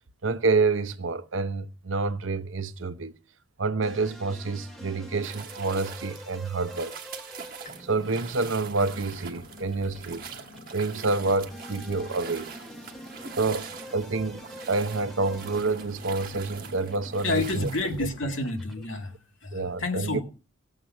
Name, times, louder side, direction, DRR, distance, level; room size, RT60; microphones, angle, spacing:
voice 1, 0.2-3.2 3.6-6.9 7.8-10.4 10.7-12.6 13.4-17.7 19.5-20.2, right 3 dB, 75° right, 0.8 m, -28 dB
sound 1, 3.8-19.2, equal, ahead, 1.5 m, -47 dB
sound 2, 5.2-18.0, right 7 dB, 45° right, 1.4 m, -44 dB
sound 3, 7.6-18.5, equal, 40° left, 1.9 m, -48 dB
voice 2, 17.2-20.2, left 2 dB, 75° left, 2.4 m, -30 dB
17.5 x 7.6 x 5.8 m
head